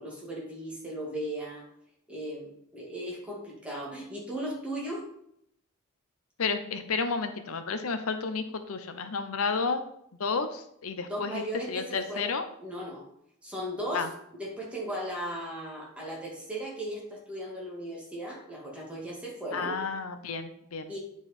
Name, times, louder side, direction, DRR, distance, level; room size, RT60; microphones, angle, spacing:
voice 1, 0.0-1.7 2.1-5.1 11.1-12.3 12.6-13.1 13.4-19.8 20.9-21.0, right 1 dB, 5° right, -4 dB, 2.0 m, -37 dB
voice 2, 6.4-9.8 10.2-12.4 13.9-14.1 19.5-20.9, left 4 dB, 80° left, 9 dB, 0.7 m, -31 dB
8.7 x 4.7 x 4.3 m, 0.72 s
head